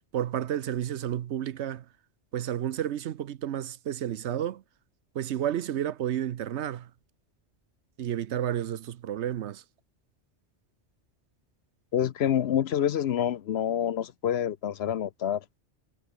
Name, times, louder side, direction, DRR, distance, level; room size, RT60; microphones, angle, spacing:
voice 1, 0.1-1.8 2.3-4.6 5.1-6.9 8.0-9.6, right 10 dB, 75° right, 1.0 m, -31 dB
voice 2, 11.9-15.4, left 10 dB, 65° left, 0.9 m, -27 dB
omnidirectional pair, 1.2 m